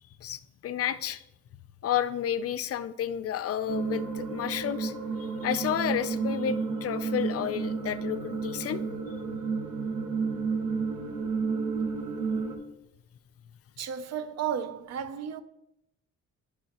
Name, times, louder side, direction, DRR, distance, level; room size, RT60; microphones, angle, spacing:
voice 1, 0.2-1.2 1.8-4.9 5.2-8.8, left 10 dB, 50° left, 0.5 m, -31 dB
sound 1, 3.7-12.6, right 4 dB, 80° right, 1.2 m, -31 dB
voice 2, 13.8-15.4, right 8 dB, 60° right, 0.6 m, -33 dB
9.9 x 5.4 x 2.9 m
cardioid pair, 90°, 30 cm